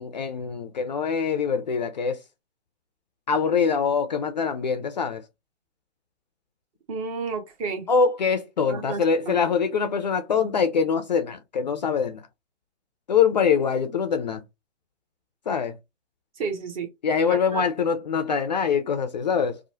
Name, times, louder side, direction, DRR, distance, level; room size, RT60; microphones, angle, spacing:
voice 1, 0.0-2.2 3.3-5.2 7.9-12.2 13.1-14.4 15.5-15.8 17.0-19.6, left 6 dB, 40° left, 0.4 m, -24 dB
voice 2, 6.9-7.9 8.7-9.4 16.4-16.9 17.3-17.6, right 5 dB, 30° right, 0.7 m, -31 dB
2.9 x 2.0 x 2.7 m
figure-of-eight pair, 130°, 37 cm